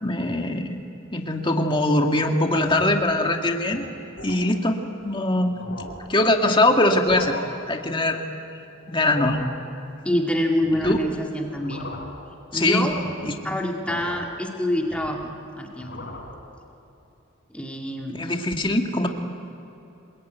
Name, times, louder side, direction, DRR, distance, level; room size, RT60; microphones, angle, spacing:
voice 1, 0.0-0.8 1.1-3.8 4.2-5.5 6.1-7.3 7.7-8.2 8.9-9.4 10.8-11.0 12.5-12.9 13.2-13.3 18.1-19.1, left 1 dB, 25° left, 3 dB, 1.9 m, -22 dB
sound 1, 2.5-3.1 3.6-3.8 4.2-4.4 5.0-5.1 5.4-6.1 6.9-7.4 8.8-9.5 10.6-11.1 11.5-12.2 12.7-13.2 13.9-14.3 14.7-15.3 15.7-16.4, left 1 dB, 55° left, 4.4 m, -38 dB
voice 2, 10.0-11.9 12.5-12.9 13.4-16.1 17.5-18.2, left 1 dB, 5° left, 0 dB, 2.1 m, -26 dB
26.5 x 22.0 x 9.3 m, 2.8 s
head